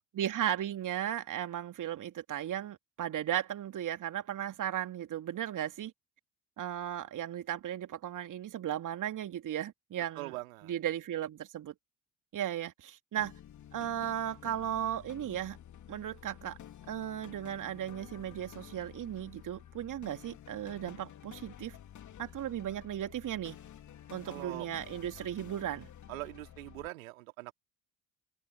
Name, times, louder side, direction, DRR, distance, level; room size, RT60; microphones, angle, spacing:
voice 1, 0.1-5.9 6.6-10.3 10.6-11.7 12.3-13.3 13.7-15.6 15.9-16.6 16.9-21.8 22.2-23.6 24.1-25.9, right 11 dB, 45° right, 3.2 m, -36 dB
voice 2, 10.2-10.7 24.3-24.7 26.1-27.5, right 20 dB, 70° right, 2.6 m, -42 dB
sound 1, 13.2-26.9, left 10 dB, 40° left, 2.8 m, -51 dB
figure-of-eight pair, 50°, 43 cm